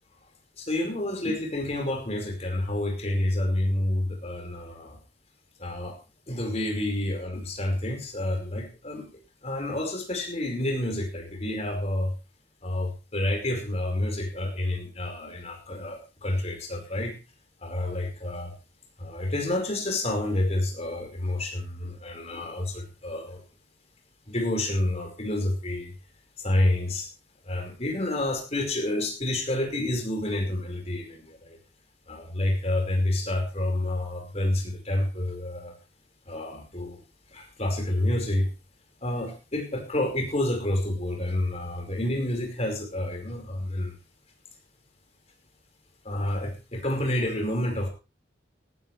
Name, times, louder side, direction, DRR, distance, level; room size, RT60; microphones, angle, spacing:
voice 1, 0.6-5.0 5.6-5.9 6.3-9.1 9.4-12.1 12.6-17.1 17.6-18.5 19.0-23.4 24.3-25.9 26.4-27.1 27.5-31.6 32.1-35.7 36.3-37.0 37.3-38.5 39.0-43.9 46.0-47.9, left 1 dB, 35° left, 3 dB, 5.0 m, -29 dB
17.5 x 14.5 x 3.3 m, 0.31 s
head